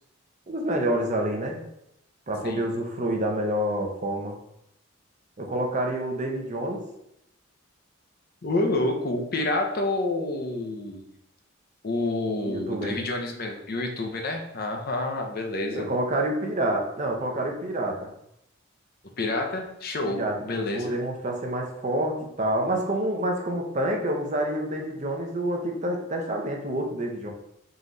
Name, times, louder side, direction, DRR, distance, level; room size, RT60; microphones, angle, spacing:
voice 1, 0.5-1.6 2.3-4.4 5.4-6.8 12.4-13.0 15.7-18.1 20.1-20.4 20.7-27.3, right 1 dB, 35° right, 2 dB, 0.6 m, -28 dB
voice 2, 8.4-11.0 11.8-15.9 19.2-21.0, left 2 dB, 45° left, 3 dB, 0.6 m, -28 dB
3.8 x 3.0 x 3.8 m, 0.78 s
head